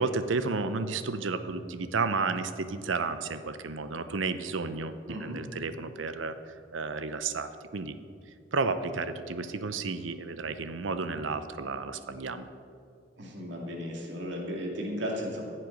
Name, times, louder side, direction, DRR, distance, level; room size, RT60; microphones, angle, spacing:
voice 1, 0.0-8.0 8.5-12.5, right 4 dB, 85° right, 11 dB, 0.7 m, -32 dB
voice 2, 5.1-5.4 13.2-15.4, equal, 65° right, -1 dB, 2.3 m, -35 dB
14.5 x 7.7 x 5.3 m, 2.4 s
head